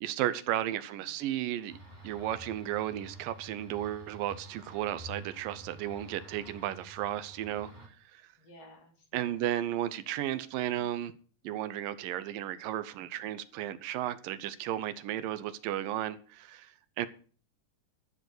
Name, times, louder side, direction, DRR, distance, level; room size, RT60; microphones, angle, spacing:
voice 1, 0.0-1.8 2.0-8.2 9.1-11.1 11.4-17.1, right 12 dB, 80° right, 2.5 m, -34 dB
voice 2, 0.9-1.2 8.4-9.4 10.7-10.8, left 1 dB, 50° left, 3.6 m, -55 dB
sound 1, 1.7-7.9, right 1 dB, 15° right, 2.7 m, -49 dB
12.5 x 6.8 x 8.0 m
omnidirectional pair, 4.0 m